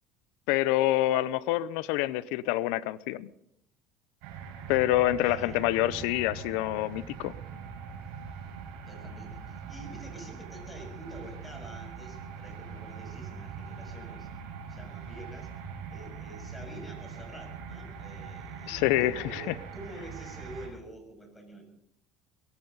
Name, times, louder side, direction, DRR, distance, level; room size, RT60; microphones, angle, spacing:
voice 1, 0.5-3.3 4.7-7.3 18.7-19.1, left 15 dB, 80° left, 19 dB, 0.7 m, -26 dB
sound 1, 4.2-20.7, right 6 dB, 80° right, 5.4 m, -42 dB
voice 2, 5.2-5.7 8.9-14.3 14.7-15.5 15.9-21.6, equal, 15° left, 3 dB, 6.5 m, -47 dB
22.5 x 16.0 x 4.0 m, 0.71 s
supercardioid pair, 100°, 0 cm